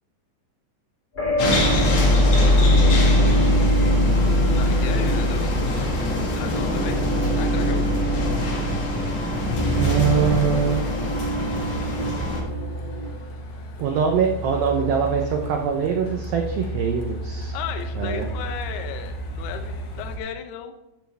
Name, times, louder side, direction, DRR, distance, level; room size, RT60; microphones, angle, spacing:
sound 1, 1.1-13.1, left 1 dB, 25° left, 1.1 m, -22 dB
sound 2, 1.4-12.4, left 2 dB, 45° left, 2.3 m, -26 dB
Truck, 1.5-20.2, equal, 65° left, 2.7 m, -35 dB
voice 1, 1.8-4.1 9.8-10.8 13.8-17.6 18.0-18.3, right 7 dB, 90° right, 3 dB, 2.0 m, -24 dB
voice 2, 4.6-5.8 6.2-7.0 7.3-7.9 17.5-20.7, left 8 dB, 80° left, 6 dB, 2.3 m, -35 dB
13.5 x 7.2 x 3.4 m, 0.93 s
omnidirectional pair, 5.5 m